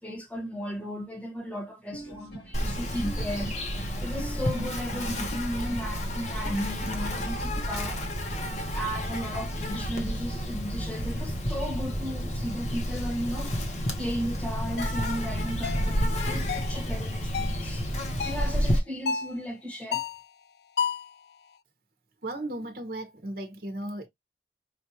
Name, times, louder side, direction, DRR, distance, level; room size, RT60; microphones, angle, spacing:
voice 1, 0.0-8.4 8.7-20.1, equal, 10° left, 1.2 m, -35 dB
sound 1, 1.9-7.6, right 1 dB, 85° left, 2.6 m, -41 dB
Insect, 2.5-18.8, equal, 40° left, 1.0 m, -30 dB
sound 2, 14.8-15.0 15.6-15.9 16.5-16.8 17.3-17.6 18.2-18.5 19.1-19.3 19.9-20.3 20.8-21.1, left 6 dB, 70° left, 0.4 m, -31 dB
voice 2, 22.2-24.1, right 1 dB, 55° right, 1.0 m, -35 dB
4.9 x 2.5 x 2.8 m
head